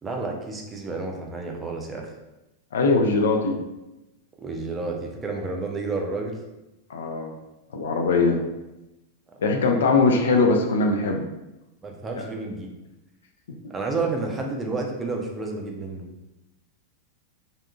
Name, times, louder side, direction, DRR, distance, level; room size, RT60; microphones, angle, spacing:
voice 1, 0.0-2.1 4.4-6.4 11.8-12.7 13.7-16.1, right 3 dB, 20° right, 1 dB, 0.4 m, -30 dB
voice 2, 2.7-3.6 6.9-7.3 7.7-8.4 9.4-11.2 12.2-12.3, left 3 dB, 60° left, 3 dB, 0.3 m, -21 dB
2.6 x 2.4 x 2.4 m, 0.97 s
figure-of-eight pair, 90°, 0 cm